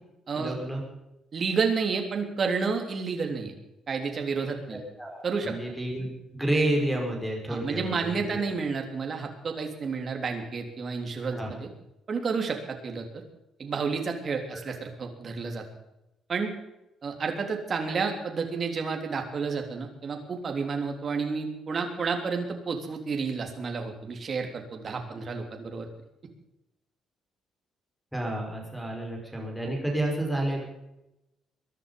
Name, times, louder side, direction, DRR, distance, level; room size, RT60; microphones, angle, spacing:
voice 1, 0.3-0.8 4.6-6.1 6.3-8.4 11.3-11.5 14.5-14.6 28.1-30.7, right 1 dB, ahead, -1 dB, 5.4 m, -30 dB
voice 2, 1.3-3.5 3.9-4.8 5.2-5.5 7.5-11.7 12.1-13.0 13.6-15.6 16.3-16.5 17.0-25.9, right 5 dB, 35° right, 3 dB, 3.4 m, -30 dB
22.5 x 11.0 x 5.4 m, 0.91 s
cardioid pair, 155°, 0 cm